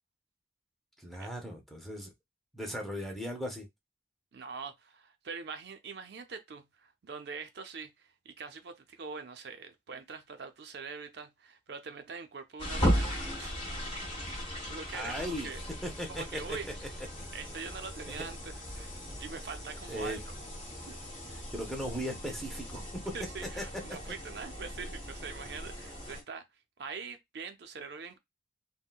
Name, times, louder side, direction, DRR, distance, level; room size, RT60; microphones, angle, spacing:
voice 1, 1.0-2.1 2.5-3.7 14.9-15.5 15.8-16.7 17.2-17.3 18.0-18.1 19.9-20.2 21.5-23.1 23.6-23.7, equal, ahead, 0.6 m, -38 dB
voice 2, 4.3-13.6 14.2-15.6 16.1-16.9 17.3-18.9 19.2-20.2 20.8-21.0 23.1-26.4 26.8-28.2, right 5 dB, 60° right, 0.4 m, -43 dB
sound 1, 12.6-26.2, equal, 30° left, 1.2 m, -37 dB
3.6 x 2.1 x 2.2 m
head